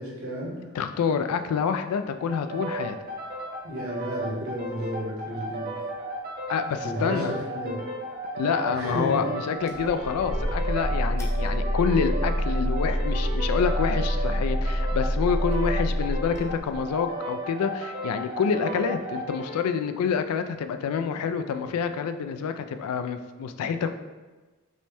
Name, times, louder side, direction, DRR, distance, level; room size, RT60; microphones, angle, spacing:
voice 1, 0.0-0.6 3.6-5.7 6.8-7.8 8.7-9.2, equal, 70° right, -4 dB, 1.3 m, -32 dB
voice 2, 0.7-3.0 6.5-7.4 8.4-23.9, left 6 dB, 85° left, 9 dB, 0.3 m, -27 dB
sound 1, 2.3-19.7, right 1 dB, 40° right, 0.6 m, -35 dB
sound 2, 9.7-17.0, equal, 10° left, 0.4 m, -27 dB
5.3 x 2.1 x 3.4 m, 1.2 s
head